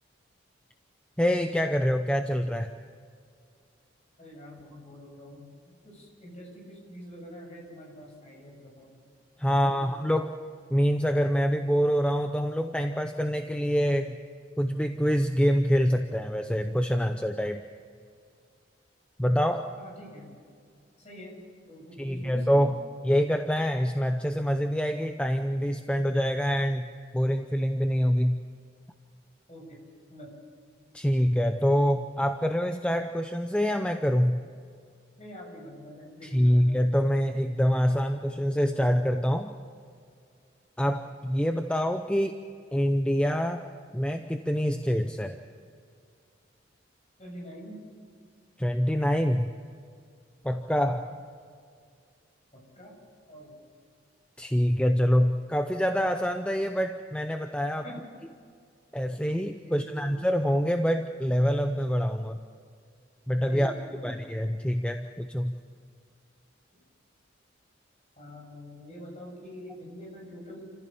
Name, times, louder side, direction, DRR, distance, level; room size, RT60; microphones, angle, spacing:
voice 1, 1.2-2.7 9.4-10.3 10.7-14.2 14.6-17.6 19.2-19.7 22.0-22.7 23.0-26.9 27.1-28.4 30.9-34.4 36.3-39.5 40.8-42.4 42.7-43.6 43.9-45.4 48.6-49.5 50.4-51.1 54.4-57.8 58.9-62.4 63.3-63.7 64.0-65.5, equal, 5° left, 6 dB, 0.6 m, -25 dB
voice 2, 4.2-5.5 5.8-9.0 9.5-10.0 19.8-20.3 21.0-21.4 21.7-22.5 29.5-29.8 30.1-30.3 35.2-36.6 47.2-47.8 51.0-51.1 52.5-52.9 53.3-53.6 57.8-58.0 59.6-60.1 63.5-64.3 68.2-70.7, equal, 35° left, -2 dB, 7.5 m, -45 dB
28.5 x 15.5 x 7.1 m, 2.2 s
head